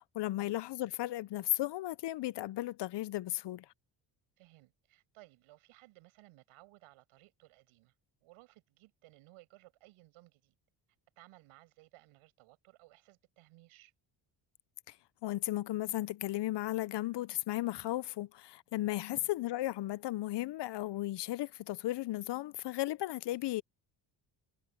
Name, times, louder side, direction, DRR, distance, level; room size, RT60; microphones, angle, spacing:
voice 1, 0.0-3.7 14.9-15.0 15.2-23.6, left 16 dB, 60° left, 0.7 m, -35 dB
voice 2, 4.4-7.9 8.2-10.5 11.2-13.9 19.1-19.3, right 20 dB, 85° right, 7.1 m, -60 dB
supercardioid pair, 70°, 49 cm